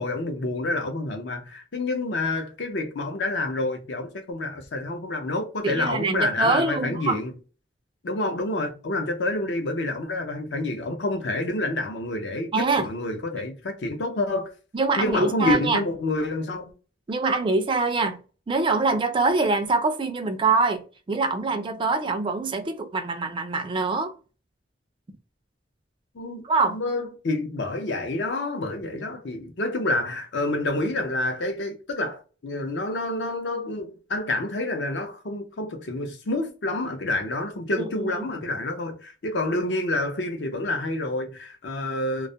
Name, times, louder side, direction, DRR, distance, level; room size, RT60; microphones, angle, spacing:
voice 1, 0.0-7.3 8.0-14.5 15.0-16.7 26.1-26.4 26.7-42.3, left 2 dB, 70° left, 0.6 m, -28 dB
voice 2, 5.6-7.2 12.5-12.9 14.7-15.8 17.1-18.2 18.5-24.1 26.4-26.8 37.8-38.3, right 3 dB, 25° right, 0.3 m, -24 dB
2.3 x 2.0 x 2.6 m
head